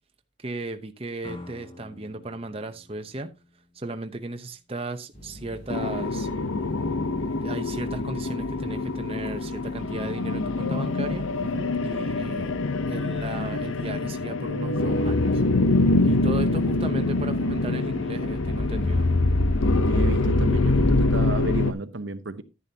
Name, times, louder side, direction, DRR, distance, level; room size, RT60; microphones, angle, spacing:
voice 1, 0.4-3.3 3.7-6.3 7.2-11.3 11.8-12.5 12.9-15.4 16.0-19.1, right 2 dB, 30° right, 0.8 m, -35 dB
sound 1, 1.2-4.1, left 1 dB, 25° left, 1.7 m, -46 dB
sound 2, 5.1-13.9, equal, 45° left, 4.2 m, -45 dB
sound 3, 5.7-21.7, left 2 dB, 85° left, 0.8 m, -24 dB
voice 2, 19.8-22.4, right 3 dB, 65° right, 0.8 m, -32 dB
10.5 x 10.5 x 2.8 m
head